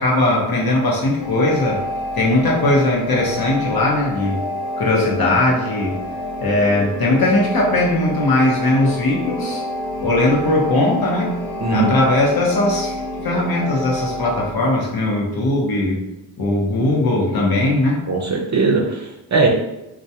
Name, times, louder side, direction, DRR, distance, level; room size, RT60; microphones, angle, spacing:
voice 1, 0.0-1.8 2.1-4.4 4.8-6.0 6.4-9.6 10.0-11.3 11.7-16.0 16.4-18.0, left 2 dB, 55° left, -2 dB, 0.8 m, -19 dB
sound 1, 1.2-14.5, left 1 dB, 80° left, 0.6 m, -28 dB
voice 2, 11.6-11.9 18.1-19.5, right 3 dB, 40° right, 0 dB, 0.6 m, -19 dB
2.2 x 2.2 x 2.8 m, 0.94 s
cardioid pair, 45°, 45 cm